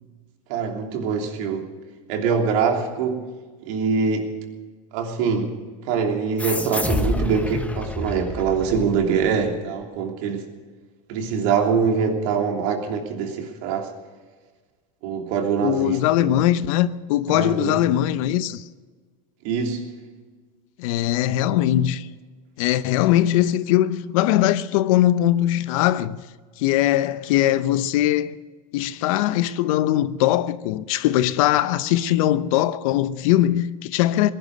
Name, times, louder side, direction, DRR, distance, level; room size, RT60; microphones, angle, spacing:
voice 1, 0.5-1.7 2.1-3.3 3.7-4.3 4.9-5.5 5.9-10.4 11.1-13.9 15.0-16.3 17.3-17.8 19.4-19.9, right 6 dB, 65° right, 3.1 m, -24 dB
sound 1, 6.4-9.4, left 2 dB, 10° left, 1.1 m, -28 dB
voice 2, 15.6-18.6 20.8-22.1 22.6-26.2 26.6-28.4 28.7-34.3, left 13 dB, 65° left, 0.8 m, -21 dB
19.0 x 11.5 x 6.6 m
supercardioid pair, 115°, 18 cm